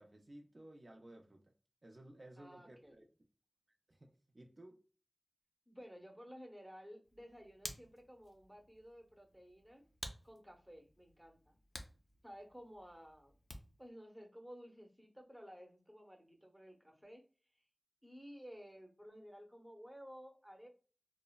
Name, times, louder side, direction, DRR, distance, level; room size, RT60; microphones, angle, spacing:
voice 1, 0.0-1.5 1.8-3.0 3.9-4.8, right 1 dB, 55° right, 0.4 m, -57 dB
voice 2, 2.4-2.9 5.7-9.8 10.2-11.6 12.2-13.3 13.8-17.2 18.0-20.7, equal, 5° right, 0.7 m, -55 dB
Hands, 7.0-13.9, left 1 dB, 60° left, 0.4 m, -53 dB
3.1 x 2.0 x 2.2 m
wide cardioid pair, 55°, 0 cm